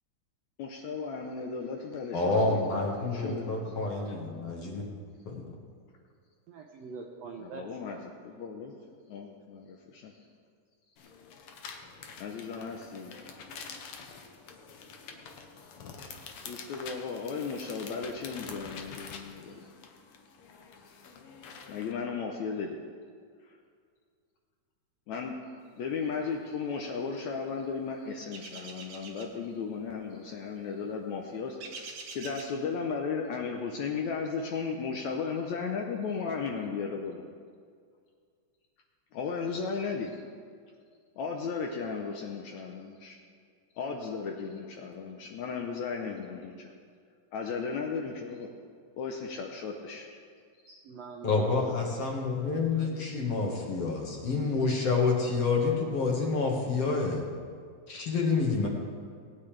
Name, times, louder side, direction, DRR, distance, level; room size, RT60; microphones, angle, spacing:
voice 1, 0.6-4.4 7.4-8.0 8.2-8.7 9.1-10.2 12.2-13.1 15.8-16.1 16.5-19.7 21.7-22.8 23.5-23.6 25.1-25.4 25.8-37.2 39.1-40.2 41.2-43.2 43.8-46.7 47.3-48.5 49.0-50.1, left 5 dB, 75° left, 2 dB, 1.8 m, -35 dB
voice 2, 2.1-4.9 5.3-5.5 51.2-57.2 57.9-58.7, left 4 dB, 50° left, -1 dB, 2.2 m, -28 dB
voice 3, 6.5-8.0 50.7-51.7 52.8-53.0, right 4 dB, 80° right, 2 dB, 1.5 m, -45 dB
sound 1, 11.0-21.9, left 5 dB, 90° left, 1.2 m, -47 dB
sound 2, 28.3-29.3 31.6-32.5, right 4 dB, 60° right, 1.6 m, -44 dB
19.5 x 9.5 x 3.3 m, 2.1 s
omnidirectional pair, 3.9 m